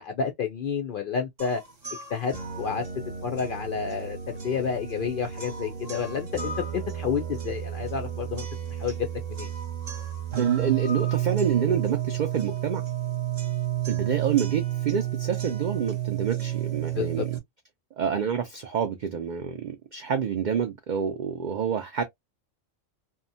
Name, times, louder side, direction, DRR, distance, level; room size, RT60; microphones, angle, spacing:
voice 1, 0.0-1.6 2.1-2.8 3.2-4.2 4.4-8.5 8.8-9.0 9.3-9.5 16.9-17.3, left 6 dB, 65° left, 0.5 m, -30 dB
sound 1, 1.4-17.4, right 11 dB, 40° right, 0.8 m, -31 dB
voice 2, 10.4-12.8 13.9-17.3 18.0-22.0, right 7 dB, 75° right, 0.4 m, -27 dB
2.7 x 2.2 x 2.5 m
omnidirectional pair, 1.3 m